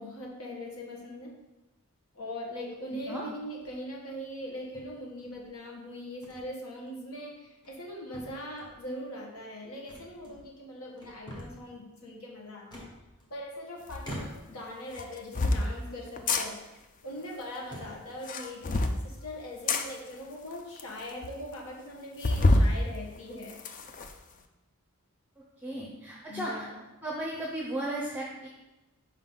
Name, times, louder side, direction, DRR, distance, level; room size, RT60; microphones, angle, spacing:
voice 1, 0.0-1.3 2.1-12.9 13.3-16.7 17.0-23.6 26.3-26.8, left 1 dB, 75° left, -1 dB, 1.5 m, -41 dB
voice 2, 2.9-3.2 25.6-26.7 27.0-28.5, right 1 dB, 10° right, -4 dB, 0.7 m, -35 dB
sound 1, 3.5-3.9 4.7-5.5 6.2-6.5 6.9-7.0 7.5-7.9 8.1-8.8 9.9-10.6 10.9-11.7 12.7-13.5 14.0-14.7 15.2-15.9 16.3-16.5 17.1-17.2 17.6-18.1, equal, 20° left, 1.1 m, -46 dB
sound 2, 13.9-14.0 14.9-15.6 16.2-16.4 18.1-19.0 19.7-19.8 20.5-20.6 20.8-20.9 21.2-21.3 22.2-22.7 23.2-24.1, left 2 dB, 35° left, 0.4 m, -25 dB
5.1 x 3.9 x 5.5 m, 1.0 s
head